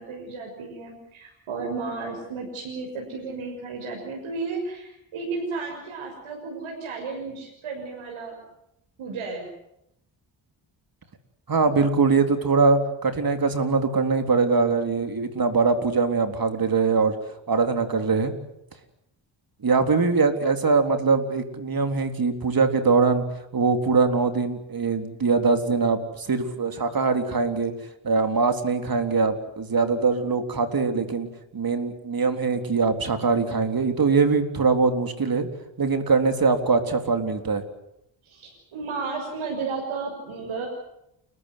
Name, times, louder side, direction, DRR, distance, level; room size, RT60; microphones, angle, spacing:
voice 1, 0.0-8.4 9.0-9.5 38.2-40.7, right 4 dB, 80° right, -1 dB, 6.7 m, -33 dB
voice 2, 11.5-17.1 17.5-18.3 19.6-23.2 23.5-27.7 28.0-31.3 31.5-35.5 35.8-37.6, right 4 dB, 45° right, 7 dB, 3.7 m, -22 dB
29.5 x 14.5 x 9.8 m, 0.82 s
cardioid pair, 60°, 47 cm